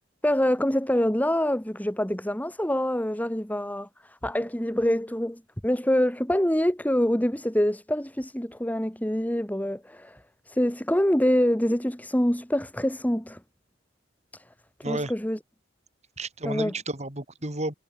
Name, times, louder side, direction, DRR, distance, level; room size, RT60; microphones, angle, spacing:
voice 1, 0.2-10.2 10.5-13.4 14.3-14.4 14.9-15.4 16.5-16.7, equal, 10° left, 1.8 m, -25 dB
voice 2, 16.2-17.7, right 2 dB, 35° right, 4.4 m, -32 dB
head